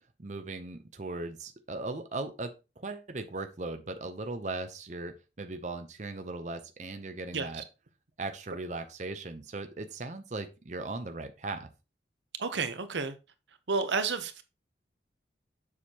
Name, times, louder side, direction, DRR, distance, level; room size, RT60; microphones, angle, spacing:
voice 1, 0.2-7.6 8.2-11.7, right 2 dB, 40° right, 0.6 m, -38 dB
voice 2, 7.3-7.6 12.4-13.1 13.7-14.5, right 4 dB, 80° right, 0.9 m, -31 dB
7.2 x 6.4 x 2.9 m
head